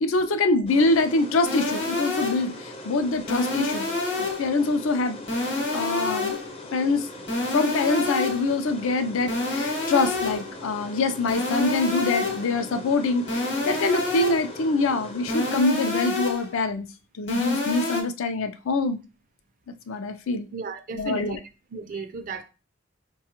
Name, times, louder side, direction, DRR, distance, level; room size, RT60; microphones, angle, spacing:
voice 1, 0.0-3.9 4.2-6.4 6.7-7.1 7.5-16.9 17.2-19.0 19.9-20.5 20.9-21.4, left 3 dB, 80° left, 0.4 m, -25 dB
sound 1, 0.7-15.6, left 1 dB, 30° left, 0.5 m, -40 dB
sound 2, 1.4-2.6 3.3-4.6 5.3-6.6 7.3-8.6 9.3-10.6 11.3-12.6 13.3-14.6 15.3-16.6 17.3-18.0, left 2 dB, 55° left, 0.9 m, -28 dB
voice 2, 20.5-21.4 21.7-22.4, right 5 dB, 40° right, 0.4 m, -34 dB
4.6 x 2.3 x 2.9 m
head